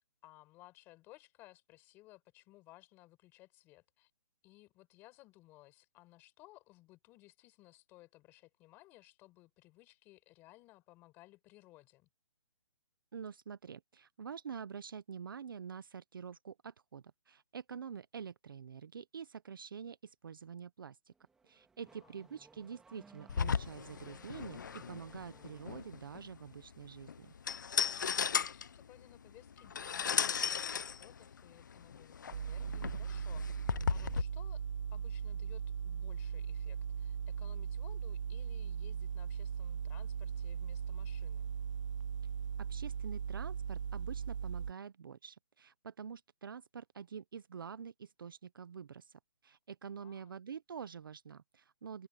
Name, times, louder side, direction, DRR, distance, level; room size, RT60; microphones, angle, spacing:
voice 1, 0.2-4.1 4.4-12.1 21.8-22.3 28.2-34.6 34.9-41.5 50.0-50.4, left 18 dB, 10° left, 5.3 m, -60 dB
voice 2, 13.1-21.1 21.4-27.3 42.6-52.1, right 7 dB, 45° right, 0.8 m, -47 dB
Car / Accelerating revving vroom, 21.1-26.1, right 4 dB, 5° right, 1.8 m, -62 dB
sound 1, 23.3-34.2, left 7 dB, 40° left, 0.5 m, -36 dB
sound 2, 32.3-44.7, right 7 dB, 75° right, 0.5 m, -38 dB
open air
hypercardioid pair, 180°, 16 cm